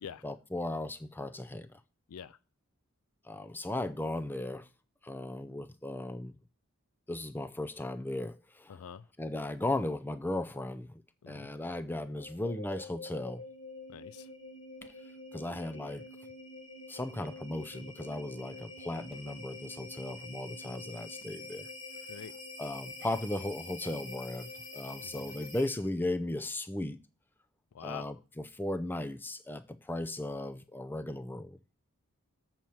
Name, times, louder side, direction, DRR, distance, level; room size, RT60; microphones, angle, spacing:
voice 1, 0.2-1.7 3.3-4.7 5.0-6.3 7.1-8.7 9.2-11.0 11.3-13.4 15.3-16.0 16.9-21.7 22.6-27.0 27.8-31.6, left 1 dB, 10° left, 0.5 m, -36 dB
voice 2, 8.7-9.1 11.2-11.5 13.9-14.3 22.1-22.3 25.0-25.3 27.7-28.1, left 8 dB, 80° left, 0.4 m, -46 dB
sound 1, 12.0-26.0, left 2 dB, 55° left, 2.3 m, -47 dB
7.7 x 4.4 x 7.1 m
head